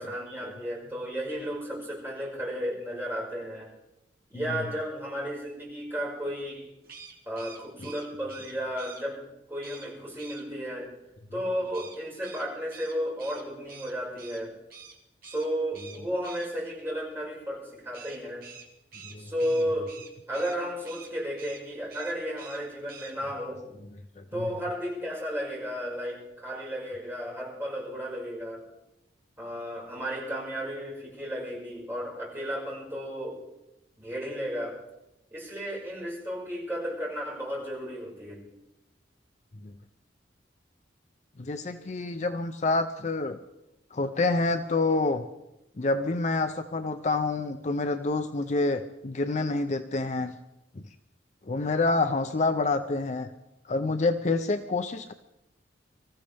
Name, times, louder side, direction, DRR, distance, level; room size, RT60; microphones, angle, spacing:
voice 1, 0.0-3.7 4.3-6.7 7.3-10.9 11.3-14.6 15.2-18.4 19.2-19.9 20.3-23.6 24.3-28.7 29.4-33.4 34.0-34.8 35.3-38.4, equal, 15° right, -6 dB, 5.3 m, -33 dB
sound 1, 6.8-9.0 9.6-9.9 10.2-10.4 11.7-14.4 14.7-15.0 15.2-15.5 15.7-16.5 17.9-20.6 20.8-21.1 21.4-21.6 21.9-22.6 22.9-23.1, right 6 dB, 50° right, 2.2 m, -47 dB
voice 2, 41.4-43.4 43.9-45.2 45.8-50.3 51.5-53.3 53.7-55.1, left 3 dB, 40° left, 8 dB, 0.5 m, -27 dB
24.5 x 15.0 x 3.4 m, 0.92 s
head